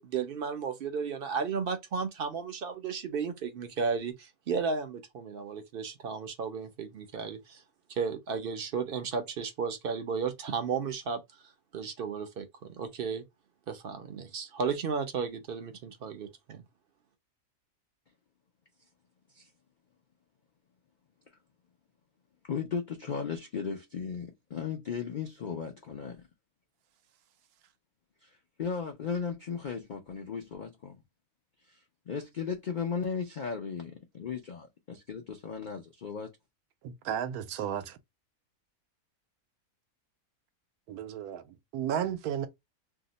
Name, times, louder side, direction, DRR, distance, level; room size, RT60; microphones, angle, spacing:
voice 1, 0.0-7.6 7.9-11.2 11.7-13.2 13.7-16.6, right 5 dB, 60° right, 0.6 m, -34 dB
voice 2, 22.4-26.2 28.2-28.3 28.6-31.0 32.1-36.3, left 6 dB, 75° left, 0.4 m, -36 dB
voice 3, 36.8-38.0 40.9-42.5, right 9 dB, 90° right, 1.1 m, -34 dB
2.7 x 2.1 x 3.8 m
omnidirectional pair, 1.5 m